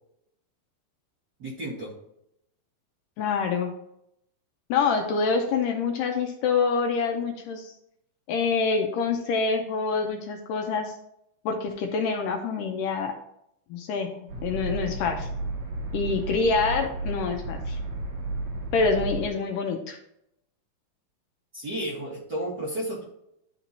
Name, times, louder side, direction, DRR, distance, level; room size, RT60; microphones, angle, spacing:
voice 1, 1.4-1.9 21.5-23.0, right 1 dB, 40° right, -7 dB, 1.5 m, -32 dB
voice 2, 3.2-3.7 4.7-7.7 8.3-11.0 11.5-13.1 13.7-15.3 15.9-17.8 18.7-20.0, left 4 dB, 80° left, 4 dB, 2.1 m, -26 dB
sound 1, 14.3-19.3, right 2 dB, 75° right, 1.0 m, -33 dB
12.0 x 4.5 x 2.7 m, 0.78 s
omnidirectional pair, 4.2 m